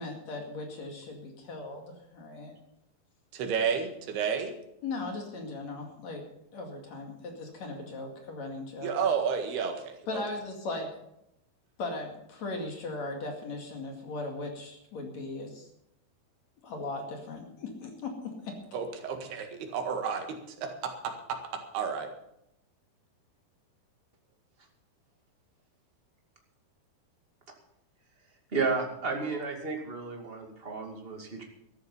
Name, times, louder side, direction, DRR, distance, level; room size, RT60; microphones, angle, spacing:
voice 1, 0.0-1.8 2.1-2.5 4.8-6.2 6.5-8.9 10.1-10.9 11.8-15.7 16.6-18.6, left 2 dB, 50° left, 2 dB, 3.2 m, -38 dB
voice 2, 3.3-4.5 8.8-10.2 18.7-22.1, right 6 dB, 85° right, 5 dB, 3.8 m, -31 dB
voice 3, 28.5-31.4, right 4 dB, 20° right, 2 dB, 1.7 m, -32 dB
13.5 x 13.0 x 5.5 m, 0.80 s
omnidirectional pair, 4.4 m